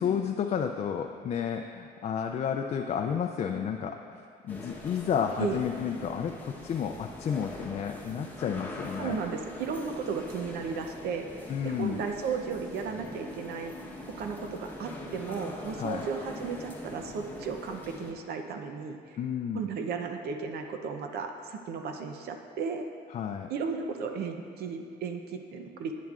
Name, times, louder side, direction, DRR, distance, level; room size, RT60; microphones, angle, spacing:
voice 1, 0.0-9.2 11.5-12.0 15.8-16.1 19.2-19.6 23.1-23.5, left 7 dB, 40° left, 4 dB, 0.4 m, -31 dB
sound 1, 4.5-18.1, left 1 dB, 10° left, 1.1 m, -42 dB
voice 2, 9.0-11.3 11.6-13.7 14.2-19.2 19.5-22.8 23.5-26.0, right 5 dB, 70° right, 5 dB, 0.7 m, -35 dB
10.5 x 9.4 x 2.5 m, 2.2 s
cardioid pair, 110°, 17 cm